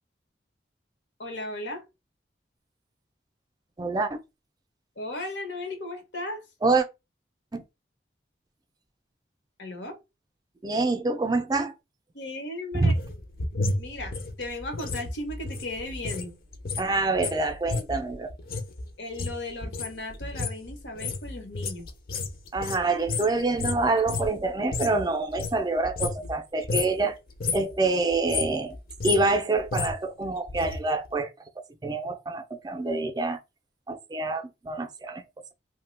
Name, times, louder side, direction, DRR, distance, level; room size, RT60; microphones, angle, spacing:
voice 1, 1.2-1.8 5.0-6.4 9.6-10.0 12.1-12.9 13.7-16.3 19.0-21.9, left 1 dB, 90° left, 0.9 m, -36 dB
voice 2, 3.8-4.2 6.6-6.9 7.5-7.6 10.6-11.7 12.7-13.0 16.8-18.3 22.5-27.2 27.5-28.8 29.0-31.3 31.8-33.4 33.9-35.2, right 3 dB, 20° right, 0.3 m, -26 dB
sound 1, 12.7-16.3 16.5-25.0 25.3-26.4 26.6-27.0 27.3-27.7 28.1-30.8 31.1-31.2, left 3 dB, 55° left, 0.5 m, -32 dB
2.7 x 2.1 x 3.1 m
head